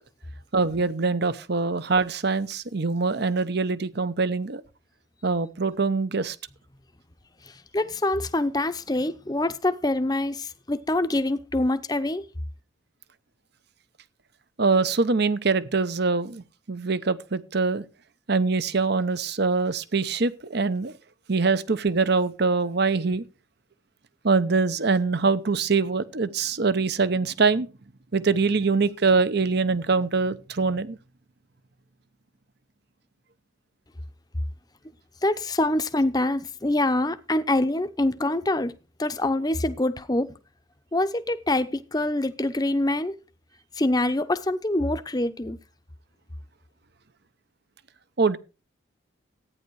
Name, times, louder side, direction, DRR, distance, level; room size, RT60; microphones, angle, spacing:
voice 1, 0.5-4.6 5.2-6.4 14.6-17.8 18.3-20.9 21.3-23.2 24.2-27.7 28.1-31.0 48.2-48.4, right 4 dB, 55° right, 0.8 m, -24 dB
voice 2, 7.4-12.2 35.2-38.7 39.0-40.3 40.9-43.2 43.8-45.6, left 1 dB, 20° left, 0.8 m, -25 dB
14.0 x 9.5 x 4.7 m
head